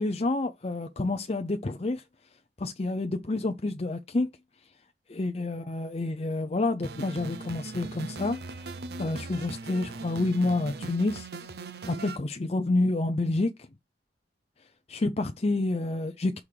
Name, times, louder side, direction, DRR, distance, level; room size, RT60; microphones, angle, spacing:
voice 1, 0.0-2.0 2.6-4.3 5.1-8.4 9.0-11.3 11.9-13.5 14.9-16.4, left 2 dB, 35° left, 0.6 m, -28 dB
sound 1, 6.8-12.2, right 3 dB, 60° right, 0.7 m, -39 dB
6.3 x 3.6 x 4.9 m
head